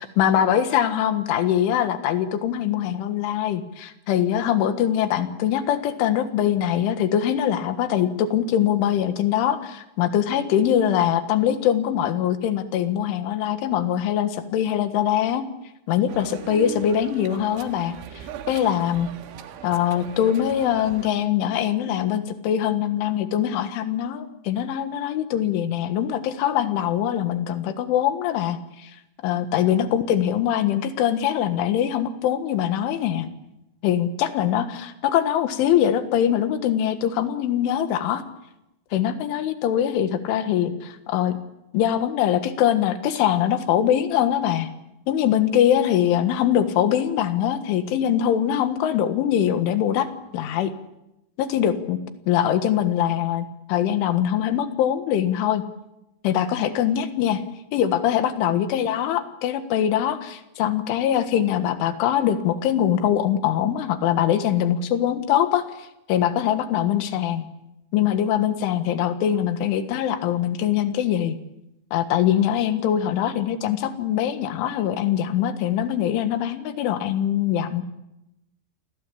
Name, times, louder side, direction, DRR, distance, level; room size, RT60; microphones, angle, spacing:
voice 1, 0.0-15.5 15.9-19.1 19.6-28.9 29.2-33.3 33.8-38.2 38.9-41.4 41.7-44.7 45.1-50.1 50.3-50.7 51.4-52.0 52.3-55.6 56.2-57.4 57.7-67.4 67.9-71.4 71.9-77.8, left 10 dB, 90° left, 10 dB, 4.1 m, -23 dB
sound 1, 16.1-21.1, right 10 dB, 90° right, 4.1 m, -39 dB
29.5 x 21.0 x 8.6 m, 0.90 s
omnidirectional pair, 5.4 m